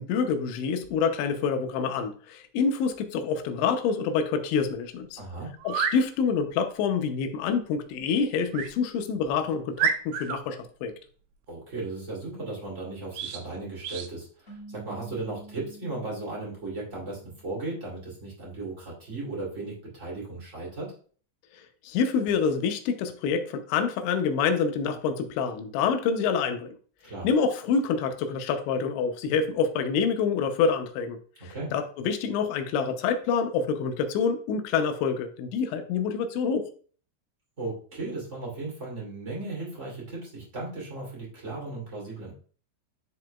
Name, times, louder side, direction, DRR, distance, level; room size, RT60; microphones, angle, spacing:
voice 1, 0.0-5.2 5.6-10.9 21.8-26.7 27.2-31.2 31.4-36.7, left 6 dB, 80° left, 7 dB, 2.9 m, -27 dB
voice 2, 5.2-5.5 11.5-20.9 27.0-27.3 31.5-31.7 37.6-42.3, right 2 dB, 20° right, -5 dB, 2.1 m, -36 dB
sound 1, 5.6-6.0 8.5-8.7 9.3-9.4 9.8-10.4 13.1-13.4 13.8-14.1, right 7 dB, 80° right, 2.8 m, -29 dB
sound 2, 14.5-17.8, right 2 dB, 20° left, 1.4 m, -48 dB
10.5 x 4.7 x 2.3 m, 0.44 s
omnidirectional pair, 5.4 m